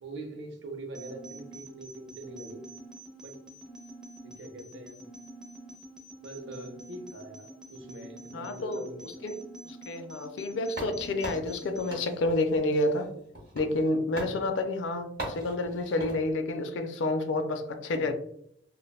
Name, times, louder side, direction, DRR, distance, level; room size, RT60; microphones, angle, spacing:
voice 1, 0.0-2.6 3.2-3.4 4.2-5.1 6.2-9.3 14.2-14.4, right 2 dB, 80° right, 0.6 m, -43 dB
sound 1, 0.9-12.0, right 1 dB, 5° right, 0.5 m, -47 dB
voice 2, 8.3-9.3 9.6-13.1 13.5-18.1, left 2 dB, 85° left, 0.4 m, -29 dB
sound 2, 10.7-13.9 14.2-14.4 15.2-16.2, right 1 dB, 55° right, 0.9 m, -40 dB
3.3 x 2.1 x 2.2 m
head